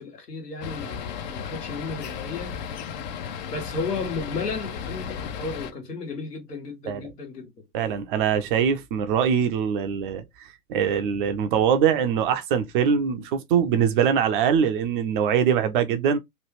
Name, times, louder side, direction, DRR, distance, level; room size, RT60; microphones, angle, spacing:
voice 1, 0.0-2.6 3.2-7.7 15.3-15.5, left 4 dB, 80° left, 1.3 m, -34 dB
sound 1, 0.6-5.7, left 7 dB, 30° left, 0.4 m, -35 dB
voice 2, 7.7-10.2 10.7-16.2, right 7 dB, 35° right, 0.5 m, -22 dB
3.1 x 2.3 x 3.1 m
figure-of-eight pair, 100°, 46 cm